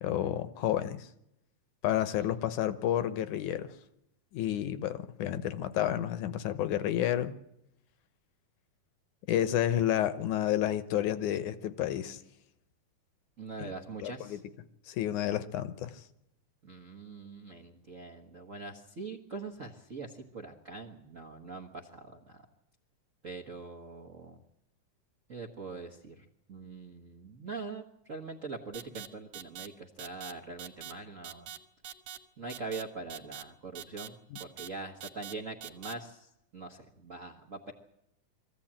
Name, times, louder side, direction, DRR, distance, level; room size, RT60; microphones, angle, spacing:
voice 1, 0.0-1.1 1.8-3.7 4.3-7.3 9.3-12.2 13.6-13.7 14.0-14.4 14.9-16.0, left 11 dB, 75° left, 12 dB, 2.2 m, -30 dB
voice 2, 13.4-14.4 16.6-22.4 23.2-24.4 25.3-31.5 32.4-37.7, right 3 dB, 50° right, 3 dB, 0.9 m, -43 dB
sound 1, 28.7-29.1 29.3-29.7 30.0-30.3 30.6-30.9 31.2-31.6 31.8-32.2 32.5-32.8 33.1-33.4 33.7-34.1 34.4-34.7 35.0-35.3 35.6-35.9, right 10 dB, 65° right, 2.3 m, -43 dB
22.5 x 15.5 x 8.8 m, 0.83 s
omnidirectional pair, 3.6 m